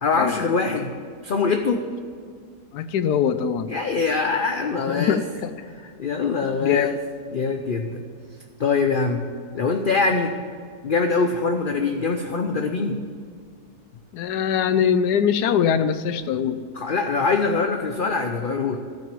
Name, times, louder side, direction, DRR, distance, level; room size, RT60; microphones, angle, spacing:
voice 1, 0.0-0.9 1.2-1.8 3.7-5.2 5.6-6.9 7.3-8.0 8.6-9.2 9.5-10.3 10.8-13.0 16.7-18.8, left 4 dB, 50° left, 4 dB, 0.6 m, -23 dB
voice 2, 2.7-3.7 4.9-5.5 6.6-6.9 14.1-16.6, left 8 dB, 85° left, 12 dB, 1.2 m, -22 dB
13.0 x 6.2 x 7.6 m, 2.1 s
omnidirectional pair, 1.7 m